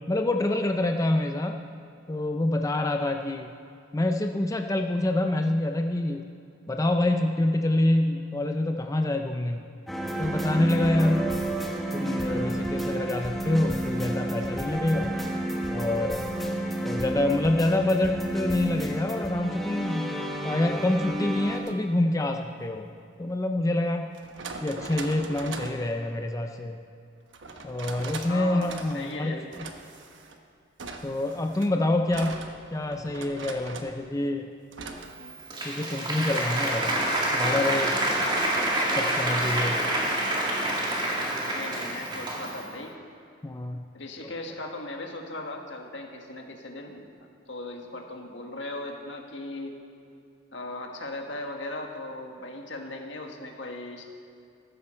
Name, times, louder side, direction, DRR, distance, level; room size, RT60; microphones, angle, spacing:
voice 1, 0.1-1.6 2.1-3.5 3.9-6.2 6.7-9.6 10.2-11.3 11.9-15.1 15.7-16.3 16.8-20.1 20.4-22.9 23.2-24.1 24.6-26.8 27.6-29.7 31.0-32.4 32.7-34.5 35.6-37.0 37.3-37.9 39.0-39.8 43.4-43.8, left 1 dB, 20° left, 4 dB, 0.5 m, -26 dB
sound 1, 9.9-21.6, right 1 dB, ahead, 1.2 m, -30 dB
sound 2, 21.5-21.7 23.3-23.4 24.1-25.9 27.3-28.3 28.6-29.2 29.5-30.4 30.8-34.0 34.7-35.1, right 3 dB, 80° right, 1.0 m, -40 dB
voice 2, 28.2-29.5 35.2-35.4 41.0-42.9 43.9-47.1 47.5-49.7 50.5-54.0, left 2 dB, 70° left, 2 dB, 1.6 m, -38 dB
Applause, 35.1-42.7, right 1 dB, 25° right, 2.0 m, -27 dB
14.0 x 13.0 x 4.4 m, 2.6 s
head